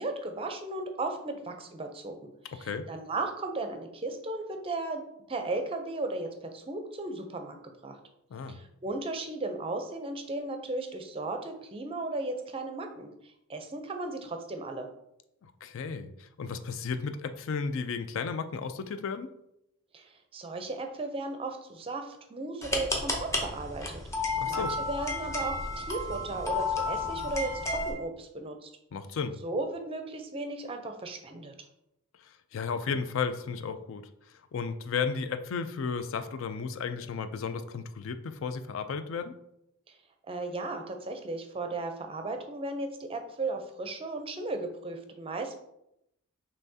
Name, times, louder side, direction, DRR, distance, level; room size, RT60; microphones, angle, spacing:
voice 1, 0.0-7.6 7.8-8.0 8.5-14.9 19.9-23.9 24.2-28.7 29.4-31.5 40.3-45.6, right 2 dB, 25° right, 6 dB, 0.5 m, -36 dB
voice 2, 15.6-19.3 24.4-24.7 28.9-29.4 32.2-34.1 34.5-39.4, left 5 dB, 65° left, 10 dB, 0.4 m, -34 dB
sound 1, 22.6-27.9, left 2 dB, 15° left, 0.6 m, -32 dB
5.6 x 3.2 x 2.7 m, 0.80 s
head